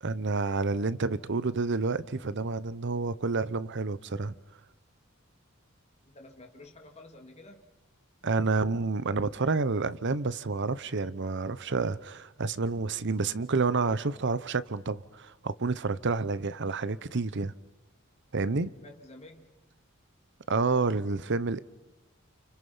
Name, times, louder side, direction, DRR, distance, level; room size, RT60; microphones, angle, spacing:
voice 1, 0.0-4.3 8.2-17.5 18.3-18.7 20.5-21.6, right 3 dB, 60° right, 0.8 m, -29 dB
voice 2, 6.0-7.7 18.7-19.6, left 2 dB, 30° left, 2.9 m, -51 dB
29.5 x 29.5 x 5.6 m
head